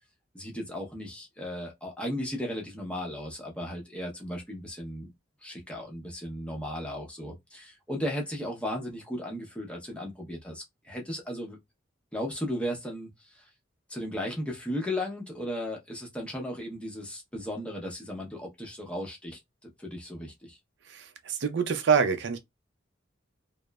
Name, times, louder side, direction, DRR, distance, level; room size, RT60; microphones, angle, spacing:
voice 1, 0.3-5.1 5.4-11.6 12.1-13.5 13.9-19.4 19.8-20.6, equal, 5° left, 0.7 m, -35 dB
voice 2, 20.9-22.4, right 6 dB, 60° right, 0.4 m, -26 dB
2.9 x 2.0 x 2.2 m
head